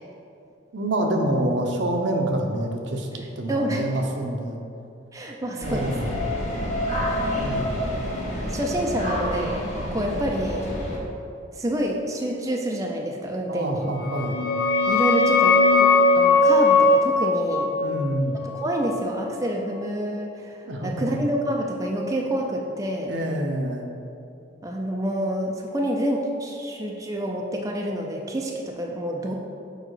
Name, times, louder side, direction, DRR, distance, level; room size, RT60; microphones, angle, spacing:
voice 1, 0.7-4.6 5.6-6.1 7.3-7.8 13.5-14.4 17.8-18.4 20.6-21.2 23.0-23.9, right 1 dB, 65° right, 2 dB, 0.8 m, -27 dB
voice 2, 3.5-3.9 5.1-6.1 7.0-7.8 8.3-10.7 11.5-13.9 14.9-17.7 18.4-23.1 24.6-29.3, right 1 dB, 15° right, 0 dB, 0.5 m, -28 dB
sound 1, 5.6-11.0, left 1 dB, 40° left, 1.4 m, -28 dB
sound 2, 14.0-19.4, left 3 dB, 60° left, 0.6 m, -20 dB
6.6 x 4.9 x 4.9 m, 2.7 s
head